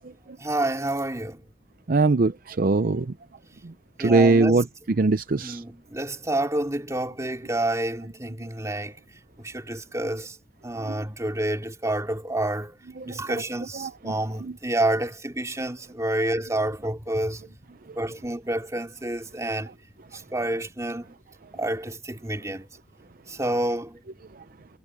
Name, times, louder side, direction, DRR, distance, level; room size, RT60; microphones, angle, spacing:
voice 1, 0.4-1.4 4.0-4.7 5.3-9.0 9.4-10.4 10.6-12.8 13.1-17.5 18.0-19.7 20.1-21.1 21.5-22.7 23.3-24.0, right 1 dB, 20° right, 2.8 m, -29 dB
voice 2, 1.9-3.1 3.6-3.7 4.0-4.6 5.0-5.6 10.8-10.9 13.0-13.2 13.8-14.1 14.4-14.5, right 3 dB, 50° right, 0.6 m, -21 dB
head